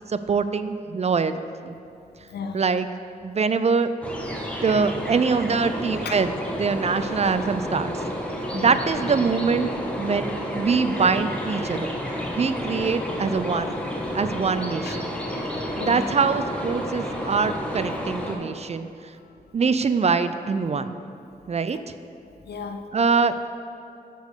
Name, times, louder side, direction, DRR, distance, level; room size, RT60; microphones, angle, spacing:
voice 1, 0.1-1.4 1.6-1.8 2.5-2.9 3.2-3.9 4.6-8.0 8.5-9.7 10.0-12.0 12.3-13.7 14.1-15.0 15.8-18.9 19.5-21.0 21.5-21.8 22.9-23.5, right 5 dB, 40° right, 11 dB, 0.4 m, -23 dB
voice 2, 2.2-2.6 3.3-3.4 6.0-6.2 8.5-8.8 12.7-12.9 14.8-15.1 15.7-16.0 21.7-21.8 22.2-22.9, left 5 dB, 75° left, 6 dB, 0.6 m, -36 dB
sound 1, 4.0-18.3, equal, 5° left, 1.3 m, -31 dB
6.2 x 5.2 x 6.6 m, 2.5 s
cardioid pair, 55°, 17 cm